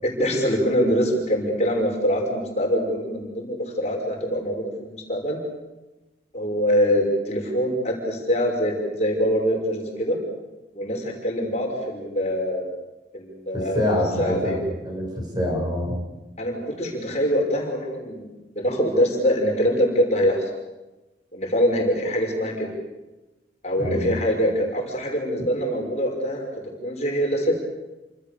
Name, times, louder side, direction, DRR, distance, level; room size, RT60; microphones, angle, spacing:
voice 1, 0.0-5.4 6.3-10.2 10.7-12.7 13.1-14.6 16.4-18.3 18.6-20.5 21.3-22.7 23.6-26.5 26.8-27.5, equal, 35° left, 1 dB, 5.8 m, -24 dB
voice 2, 13.5-16.0 23.8-24.0, left 1 dB, 20° right, 0 dB, 7.5 m, -26 dB
29.0 x 26.5 x 6.9 m, 1.1 s
head